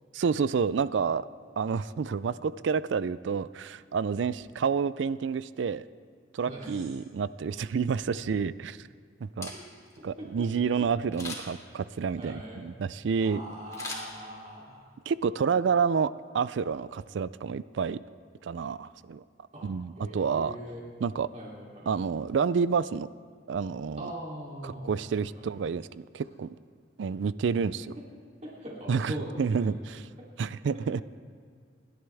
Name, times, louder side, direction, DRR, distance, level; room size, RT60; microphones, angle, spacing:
voice 1, 0.1-1.2 1.6-5.9 6.3-8.9 9.2-9.5 10.0-13.4 15.1-18.0 18.4-19.2 19.6-20.6 21.0-21.3 21.9-23.1 23.5-24.1 24.6-26.6 27.0-28.0 28.9-30.1 30.4-31.0, right 6 dB, 70° right, 17 dB, 0.4 m, -29 dB
voice 2, 6.4-6.9 10.2-10.3 12.2-12.7 13.2-14.8 19.5-19.7 20.0-20.8 21.3-21.9 24.0-25.4 28.4-29.7 30.2-30.3 30.7-31.0, equal, 40° right, -4 dB, 3.1 m, -41 dB
Camera, 9.2-10.0 11.1-11.7 13.7-14.7 15.1-15.2, left 2 dB, 20° left, 2.6 m, -40 dB
28.5 x 11.5 x 3.5 m, 2.1 s
head